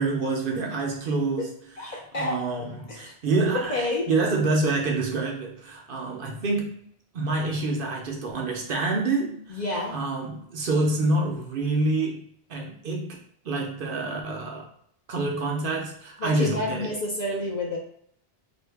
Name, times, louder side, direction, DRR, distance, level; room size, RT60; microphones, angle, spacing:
voice 1, 0.0-1.5 1.8-6.8 7.1-9.6 9.9-13.2 13.4-14.7 15.1-16.9, right 3 dB, 60° right, 0 dB, 0.7 m, -27 dB
voice 2, 1.8-2.4 2.9-3.1 3.5-4.0 9.5-10.0 16.2-17.8, left 2 dB, 50° left, -2 dB, 0.6 m, -29 dB
2.7 x 2.5 x 3.3 m, 0.68 s
omnidirectional pair, 1.1 m